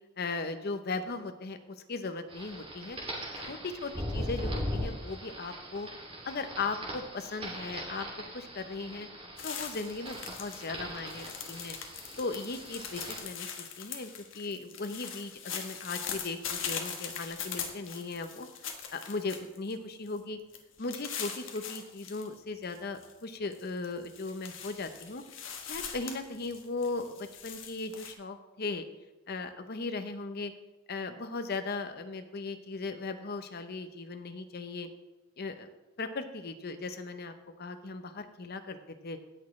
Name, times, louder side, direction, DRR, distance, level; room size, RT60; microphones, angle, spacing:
voice 1, 0.2-1.6 1.9-3.0 3.4-5.9 6.3-8.1 8.3-9.1 9.4-11.8 12.2-18.5 18.9-20.4 20.8-25.2 25.6-28.8 29.3-30.5 30.9-34.9 35.4-35.7 36.0-39.2, left 3 dB, 50° left, 8 dB, 0.8 m, -37 dB
sound 1, 2.3-13.2, equal, 30° right, 2.6 m, -40 dB
sound 2, 9.4-10.7 10.9-19.7 20.1-20.2 20.5-22.3 22.6-23.1 23.5-28.1, left 7 dB, 70° left, 1.3 m, -41 dB
17.0 x 6.3 x 3.2 m, 1.1 s
head